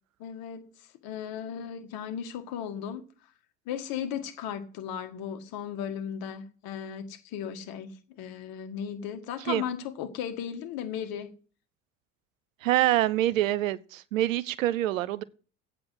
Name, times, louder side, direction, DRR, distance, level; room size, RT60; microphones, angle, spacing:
voice 1, 0.2-0.7 1.0-3.1 3.7-11.3, left 8 dB, 65° left, 1.8 m, -36 dB
voice 2, 12.6-15.2, right 14 dB, 85° right, 0.7 m, -26 dB
8.8 x 6.9 x 7.8 m
hypercardioid pair, 65°, 39 cm